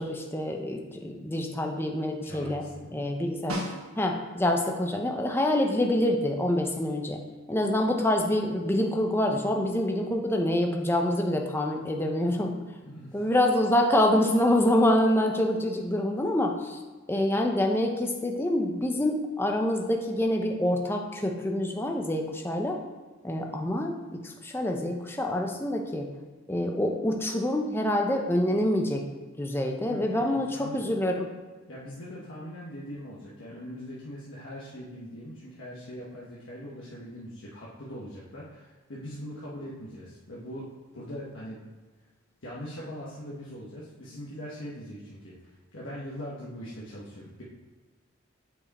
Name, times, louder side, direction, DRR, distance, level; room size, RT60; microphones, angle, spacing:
voice 1, 0.0-2.6 2.9-3.6 4.0-7.2 7.5-12.5 13.1-16.8 17.1-22.8 23.2-26.1 26.5-29.0 29.4-31.3, left 1 dB, 10° left, 2 dB, 0.7 m, -26 dB
voice 2, 2.2-2.9 12.8-13.2 29.8-30.8 31.7-40.7 40.9-41.6 42.4-47.4, equal, 60° left, -7 dB, 1.2 m, -41 dB
Snare drum, 3.5-4.4 8.9-9.0, right 1 dB, 80° right, 1.3 m, -36 dB
8.3 x 4.8 x 4.2 m, 1.3 s
head